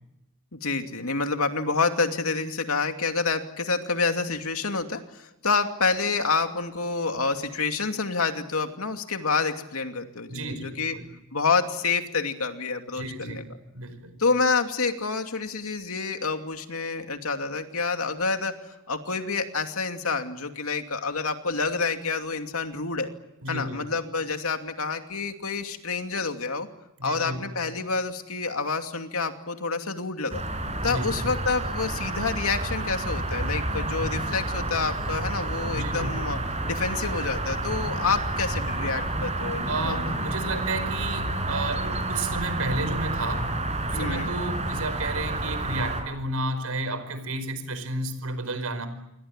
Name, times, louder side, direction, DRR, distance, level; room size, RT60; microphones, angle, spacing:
voice 1, 0.5-10.9 11.3-13.4 14.2-23.1 23.5-26.7 27.0-30.4 30.8-36.4 36.6-40.2 43.9-44.3, left 4 dB, 80° left, 6 dB, 2.7 m, -28 dB
voice 2, 10.3-11.1 12.9-13.5 13.7-14.2 23.4-23.9 27.0-27.5 30.8-31.1 35.7-36.2 39.7-43.5 43.8-48.9, right 2 dB, 85° right, 12 dB, 4.9 m, -32 dB
sound 1, 30.3-46.0, right 2 dB, 30° right, 6.4 m, -29 dB
28.0 x 23.5 x 9.0 m, 0.91 s
head